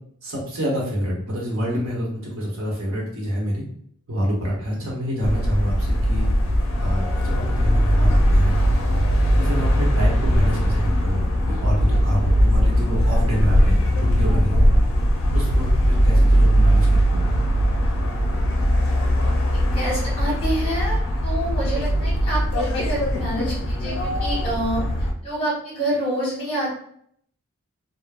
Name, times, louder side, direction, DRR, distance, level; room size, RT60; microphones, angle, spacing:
voice 1, 0.2-3.6 4.1-6.3 6.8-8.6 9.4-11.2 11.5-14.7 15.3-17.3, equal, 75° right, -3 dB, 0.9 m, -27 dB
sound 1, 5.2-25.1, equal, 65° left, 0.5 m, -20 dB
voice 2, 19.5-24.8 25.2-26.7, right 1 dB, 25° left, -6 dB, 1.2 m, -27 dB
3.3 x 2.0 x 2.4 m, 0.65 s
head